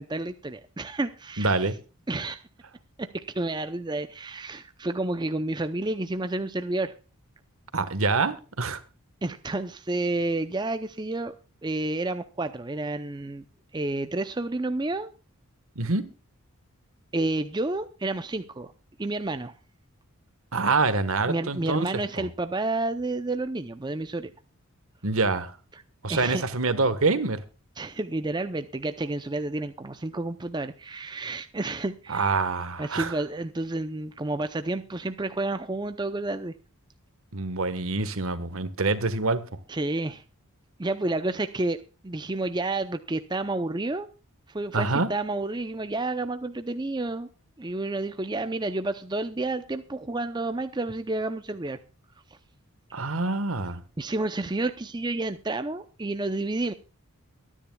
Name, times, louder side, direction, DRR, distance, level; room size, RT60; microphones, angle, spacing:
voice 1, 0.0-1.6 2.1-2.4 3.0-6.9 9.2-11.3 11.6-13.4 13.7-15.1 17.1-18.7 19.0-19.5 21.3-24.3 25.7-25.8 26.1-26.5 27.8-32.4 32.8-36.6 39.7-40.2 40.8-41.8 42.0-44.1 44.5-47.3 47.6-51.8 54.0-56.7, right 2 dB, 20° right, 9 dB, 0.5 m, -30 dB
voice 2, 1.4-1.7 7.7-8.8 15.7-16.1 20.5-21.9 22.2-22.3 25.0-25.5 26.0-27.4 32.1-33.1 37.3-39.4 44.7-45.1 52.9-53.8, right 3 dB, 65° right, 12 dB, 1.4 m, -26 dB
23.0 x 10.0 x 2.3 m, 0.35 s
head